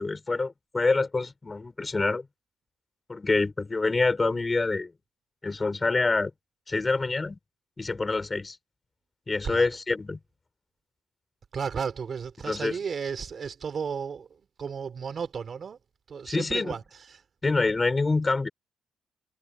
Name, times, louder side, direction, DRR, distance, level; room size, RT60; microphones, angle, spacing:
voice 1, 0.0-2.3 3.1-4.9 5.4-6.3 6.7-7.4 7.8-8.6 9.3-10.2 12.5-12.8 16.3-16.7 17.4-18.5, left 3 dB, 25° left, 4.9 m, -26 dB
voice 2, 11.5-14.3 14.6-15.8 16.1-16.8 17.1-17.2, right 6 dB, 50° right, 3.6 m, -33 dB
cardioid pair, 90°, 0 cm